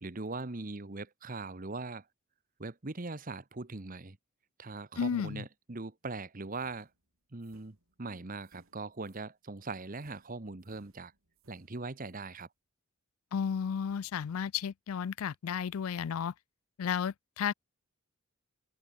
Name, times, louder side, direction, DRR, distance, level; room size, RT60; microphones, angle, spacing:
voice 1, 0.0-2.1 2.6-4.2 4.6-6.9 7.3-11.1 11.5-12.5, right 3 dB, 40° right, 1.1 m, -41 dB
voice 2, 5.0-5.4 13.3-16.3 16.8-17.5, left 7 dB, 85° left, 0.4 m, -33 dB
sound 1, 6.5-9.3 9.9-12.4, right 2 dB, 75° right, 7.7 m, -68 dB
open air
head